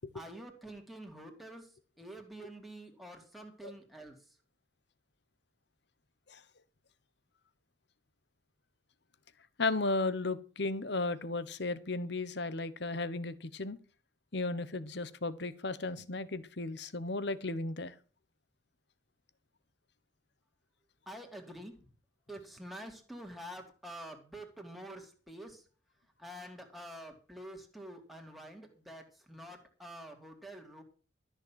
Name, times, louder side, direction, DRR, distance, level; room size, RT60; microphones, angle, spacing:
voice 1, 0.1-1.7 2.0-4.2 21.1-21.7 22.3-25.6 26.2-30.8, right 1 dB, ahead, 2 dB, 2.7 m, -47 dB
voice 2, 9.6-13.8 14.3-17.9, left 3 dB, 65° left, 15 dB, 1.1 m, -35 dB
13.5 x 6.7 x 7.5 m, 0.38 s
head